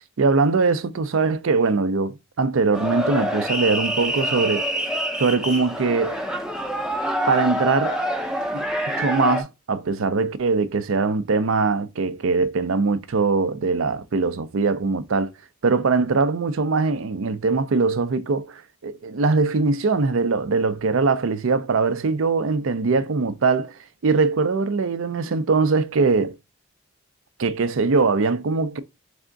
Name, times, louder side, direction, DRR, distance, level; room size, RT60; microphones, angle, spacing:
voice 1, 0.2-4.7 5.2-6.2 7.3-8.0 8.5-8.6 9.0-15.3 15.6-26.3 27.4-28.8, right 4 dB, 60° right, 0.5 m, -22 dB
sound 1, 2.7-9.4, equal, 5° right, 0.5 m, -26 dB
3.6 x 3.5 x 3.8 m
head